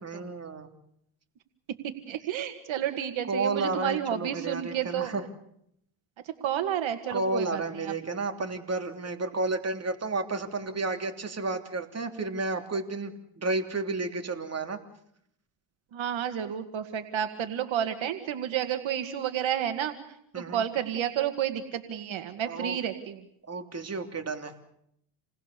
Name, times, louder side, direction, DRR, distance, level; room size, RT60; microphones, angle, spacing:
voice 1, 0.0-0.7 3.3-5.2 7.1-14.8 20.3-20.7 22.4-22.8 23.5-24.5, right 3 dB, 30° right, 5 dB, 3.2 m, -32 dB
voice 2, 2.1-5.1 6.4-7.9 15.9-19.9 20.4-23.2, right 10 dB, 65° right, 8 dB, 2.0 m, -31 dB
28.5 x 20.0 x 6.9 m, 0.74 s
cardioid pair, 85°, 49 cm